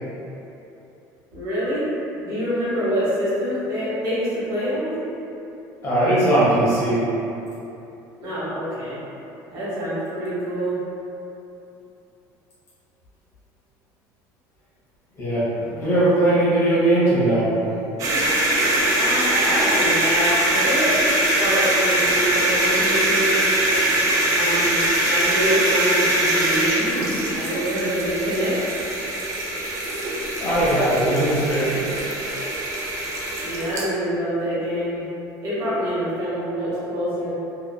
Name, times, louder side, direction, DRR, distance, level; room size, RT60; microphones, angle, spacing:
voice 1, 1.3-1.9 2.2-5.0 8.2-9.0 9.5-10.8 15.6-15.9 19.0-20.9 21.3-23.4 24.3-26.9 27.3-28.5 33.4-35.0 35.4-37.3, equal, 60° right, -10 dB, 1.0 m, -26 dB
voice 2, 5.8-7.0 15.2-15.5 15.8-17.5 30.4-31.8, right 1 dB, 35° left, -10 dB, 0.9 m, -19 dB
sound 1, 18.0-33.9, right 1 dB, 45° right, 0.5 m, -22 dB
2.8 x 2.4 x 2.2 m, 2.9 s
cardioid pair, 150°, 8 cm